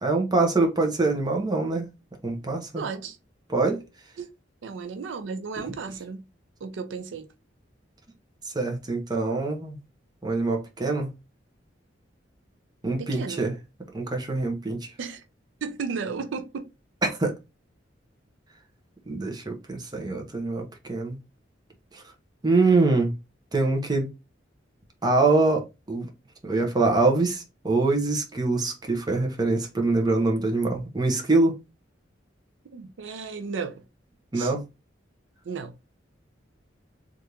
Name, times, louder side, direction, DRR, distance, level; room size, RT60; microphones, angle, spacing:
voice 1, 0.0-1.9 2.2-2.8 3.5-3.8 8.5-9.8 10.2-11.1 12.8-13.6 13.9-14.9 17.0-17.3 19.1-21.2 21.9-22.0 22.4-23.1 23.5-24.1 25.0-25.6 25.9-26.1 26.4-31.5 34.3-34.6, right 3 dB, 20° right, 0.8 m, -24 dB
voice 2, 2.8-3.2 4.2-4.3 4.6-6.3 6.6-7.3 13.0-13.4 15.0-15.2 15.6-16.7 32.7-33.8 34.3-34.5 35.4-35.8, right 5 dB, 80° right, 0.4 m, -34 dB
3.4 x 2.5 x 2.8 m
head